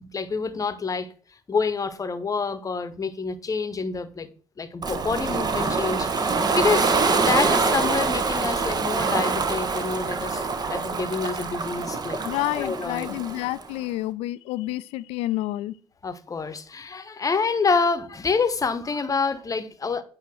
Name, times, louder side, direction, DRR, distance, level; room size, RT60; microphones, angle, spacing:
voice 1, 0.1-1.1 1.5-4.3 4.6-12.2 12.6-13.1 16.0-20.0, left 4 dB, 35° left, 0.9 m, -27 dB
Ocean, 4.8-13.7, right 4 dB, 40° right, 1.1 m, -25 dB
voice 2, 12.2-15.8, left 16 dB, 75° left, 0.4 m, -29 dB
8.3 x 2.8 x 6.3 m
hypercardioid pair, 55°, 11 cm